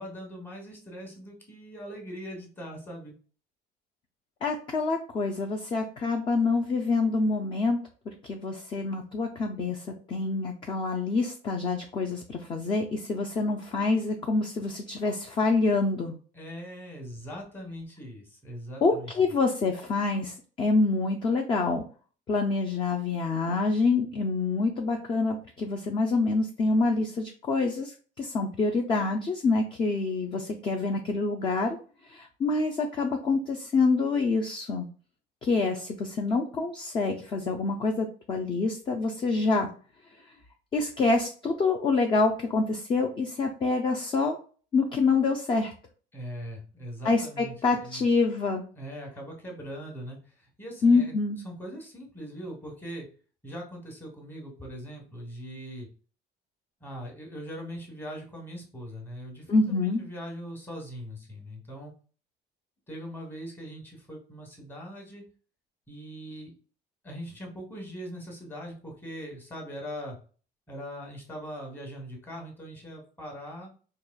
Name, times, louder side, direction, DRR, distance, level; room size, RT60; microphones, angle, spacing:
voice 1, 0.0-3.1 16.3-19.3 46.1-48.1 48.8-51.1 51.4-53.1 53.4-55.9 56.8-61.9 62.9-65.2 65.9-66.5 67.0-70.2 70.7-73.7, equal, 10° left, 0 dB, 1.0 m, -41 dB
voice 2, 4.4-7.8 8.2-16.1 18.8-21.8 22.3-31.8 32.1-34.9 35.4-39.7 40.7-44.4 44.7-45.7 47.0-48.6 50.8-51.4 59.5-60.0, left 3 dB, 25° left, 4 dB, 0.4 m, -26 dB
4.7 x 2.8 x 2.2 m, 0.39 s
cardioid pair, 175°, 19 cm